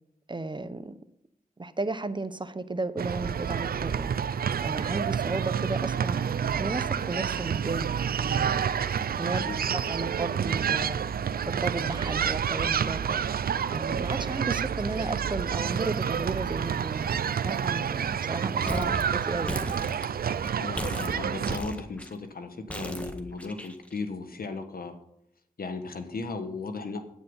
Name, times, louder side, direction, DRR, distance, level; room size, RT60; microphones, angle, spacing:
voice 1, 0.3-1.0 1.6-4.1 4.6-6.2 6.6-8.7 9.2-9.4 9.7-11.1 11.4-13.2 13.7-19.8, right 2 dB, 30° right, 12 dB, 0.9 m, -34 dB
sound 1, 3.0-21.6, right 8 dB, 80° right, 0.4 m, -29 dB
sound 2, 18.6-19.0 19.3-20.5 20.8-22.1 22.7-24.0, equal, 10° left, 1.6 m, -35 dB
voice 2, 20.5-24.9 25.6-27.0, left 3 dB, 75° left, 7 dB, 1.4 m, -36 dB
9.4 x 9.4 x 5.5 m, 0.75 s
cardioid pair, 50°, 15 cm